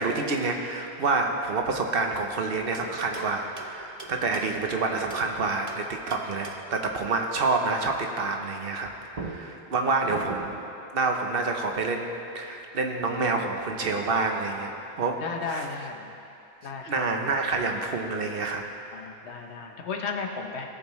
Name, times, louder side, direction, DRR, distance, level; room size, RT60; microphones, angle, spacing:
voice 1, 0.0-10.6 10.9-15.2 15.5-15.7 16.9-18.6, right 3 dB, 60° right, 3 dB, 1.0 m, -28 dB
sound 1, 2.7-5.3 5.7-6.8 8.8-8.9 9.1-10.8, right 3 dB, 40° right, 0.8 m, -42 dB
voice 2, 15.2-16.1 16.6-17.1 18.9-20.7, left 4 dB, 90° left, 3 dB, 1.2 m, -34 dB
17.5 x 7.1 x 3.1 m, 2.8 s
omnidirectional pair, 1.1 m